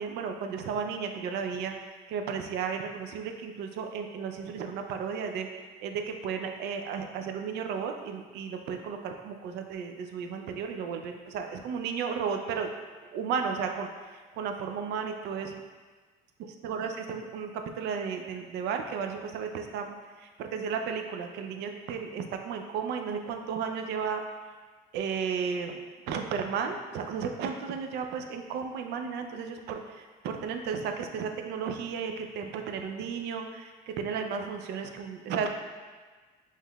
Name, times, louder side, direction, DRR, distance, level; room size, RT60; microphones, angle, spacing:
voice 1, 0.0-1.7 2.1-5.5 5.8-12.7 13.1-13.9 14.3-15.5 16.6-19.9 20.2-24.2 24.9-25.8 26.1-35.5, right 6 dB, 80° right, 5 dB, 0.4 m, -34 dB
5.5 x 3.1 x 2.3 m, 1.4 s
cardioid pair, 110°, 17 cm